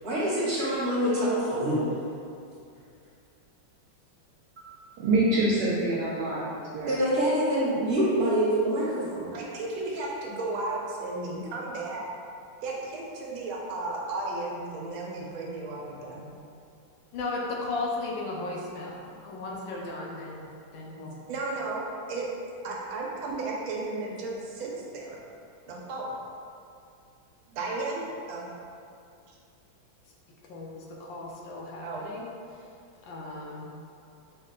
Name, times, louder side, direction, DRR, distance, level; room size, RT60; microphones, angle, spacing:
voice 1, 0.0-1.8 6.9-9.3, right 1 dB, 40° right, -9 dB, 1.0 m, -25 dB
voice 2, 4.6-6.4 6.7-6.9, right 2 dB, 70° right, -6 dB, 1.0 m, -26 dB
voice 3, 9.3-12.0 12.6-16.3 19.3-19.4 20.8-22.3 22.6-25.2 25.7-26.2 27.5-28.0 28.3-28.5 31.8-32.0, right 2 dB, 85° right, -3 dB, 1.5 m, -34 dB
voice 4, 17.1-21.2 30.5-32.3 33.0-33.7, left 2 dB, 75° left, -2 dB, 1.3 m, -36 dB
5.2 x 2.2 x 3.7 m, 2.5 s
omnidirectional pair, 2.2 m